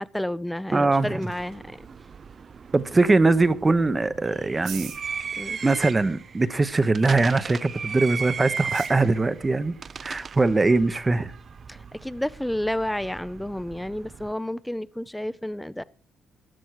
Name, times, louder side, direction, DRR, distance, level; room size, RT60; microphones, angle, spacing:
voice 1, 0.0-1.9 5.4-5.6 11.7-15.8, left 1 dB, 5° left, 0.6 m, -31 dB
sound 1, 0.6-13.1, right 9 dB, 85° right, 4.9 m, -51 dB
voice 2, 0.7-1.3 2.7-4.9 5.6-9.8 10.0-11.3, right 3 dB, 25° right, 0.9 m, -21 dB
sound 2, 1.3-14.3, right 6 dB, 45° right, 0.5 m, -37 dB
14.0 x 10.5 x 4.7 m
cardioid pair, 90°, 0 cm